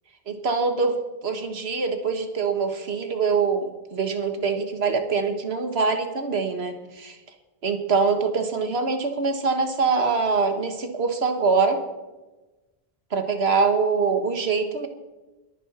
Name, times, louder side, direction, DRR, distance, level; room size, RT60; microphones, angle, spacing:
voice 1, 0.3-7.2 7.6-11.8 13.1-14.9, right 4 dB, 80° right, 7 dB, 1.6 m, -24 dB
22.0 x 9.9 x 4.3 m, 1.1 s
omnidirectional pair, 1.1 m